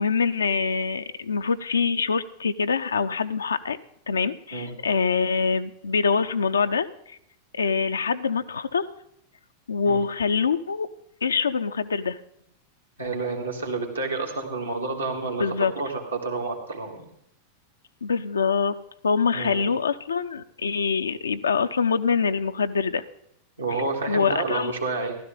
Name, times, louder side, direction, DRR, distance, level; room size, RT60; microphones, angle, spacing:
voice 1, 0.0-3.8 4.1-7.2 7.5-8.9 9.7-10.9 11.2-12.2 15.4-15.7 18.0-18.8 19.0-23.0 23.7-24.7, left 5 dB, 70° left, 9 dB, 0.4 m, -25 dB
voice 2, 13.0-17.1 19.3-19.7 23.6-25.2, right 3 dB, 80° right, 1 dB, 2.0 m, -29 dB
15.5 x 12.0 x 3.7 m, 0.74 s
figure-of-eight pair, 90°, 0 cm